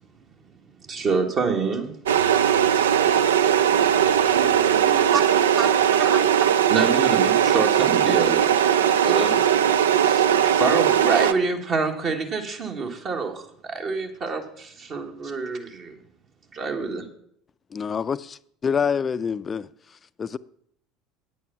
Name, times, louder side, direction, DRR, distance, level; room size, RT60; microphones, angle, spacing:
voice 1, 0.9-2.0 5.1-5.2 5.6-5.7 6.0-8.5 9.0-9.4 9.9-10.3 10.5-15.9 16.5-17.0, right 4 dB, 45° right, 1.6 m, -27 dB
sound 1, 2.1-11.3, right 9 dB, 75° right, 0.4 m, -19 dB
voice 2, 4.3-6.5, right 1 dB, 90° left, 0.8 m, -37 dB
voice 3, 17.7-19.7 20.2-20.4, left 6 dB, 30° left, 0.4 m, -26 dB
9.1 x 8.3 x 5.7 m
figure-of-eight pair, 65°, 0 cm